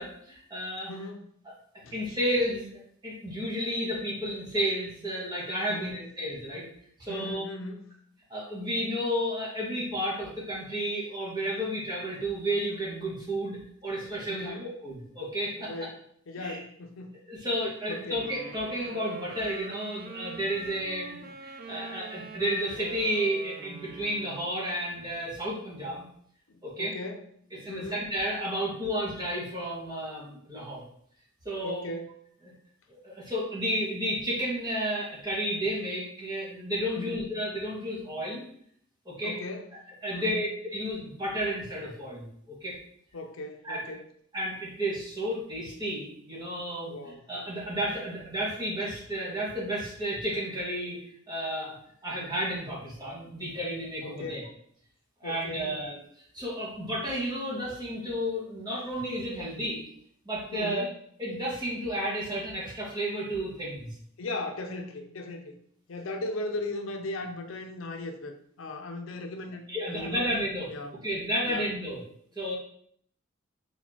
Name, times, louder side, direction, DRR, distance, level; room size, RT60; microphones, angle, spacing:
voice 1, 0.0-0.9 1.9-6.6 7.0-7.4 8.3-14.6 14.8-15.7 16.4-16.6 17.3-26.0 26.6-26.9 27.6-30.8 31.5-31.9 33.0-38.4 39.1-39.3 40.0-42.3 42.6-42.8 43.6-43.8 44.3-47.0 47.3-51.8 52.0-54.4 55.2-56.0 56.3-59.8 60.3-60.9 61.2-63.9 69.7-70.7 71.0-72.0 72.3-72.5, equal, 20° right, -6 dB, 1.7 m, -32 dB
voice 2, 0.9-1.3 1.8-2.0 5.7-6.0 7.1-7.9 14.3-14.7 15.6-16.0 16.3-17.1 17.5-17.6 17.9-18.2 26.5-27.3 27.5-28.0 31.6-32.2 36.9-37.3 39.2-39.7 40.1-40.5 43.1-44.0 46.9-47.2 54.0-54.5 55.2-55.8 60.5-60.9 64.2-65.5 65.9-70.2 70.7-71.0 71.5-71.7, left 2 dB, 75° left, 5 dB, 0.6 m, -37 dB
Wind instrument woodwind instrument, 18.1-24.6, right 4 dB, 45° right, 0.5 m, -44 dB
4.5 x 4.1 x 2.9 m, 0.64 s
head